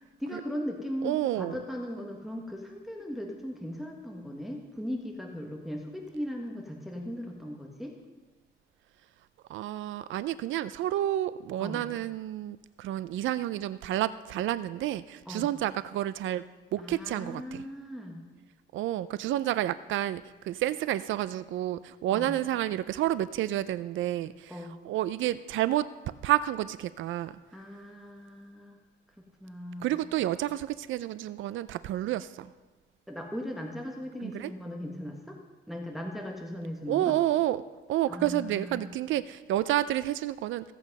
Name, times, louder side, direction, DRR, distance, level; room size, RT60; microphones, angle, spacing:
voice 1, 0.0-7.9 11.6-11.8 15.3-15.5 16.8-18.2 22.1-22.3 24.5-24.7 27.5-28.8 29.4-29.9 33.1-35.4 35.7-37.2 38.1-38.9, equal, ahead, 0 dB, 1.5 m, -38 dB
voice 2, 1.0-1.6 9.5-16.4 16.7-17.6 18.7-24.6 24.8-25.9 26.2-27.3 29.8-32.5 34.2-34.5 36.9-37.6 37.9-40.7, right 13 dB, 90° right, 15 dB, 0.4 m, -30 dB
16.0 x 8.4 x 5.4 m, 1.2 s
cardioid pair, 120°, 19 cm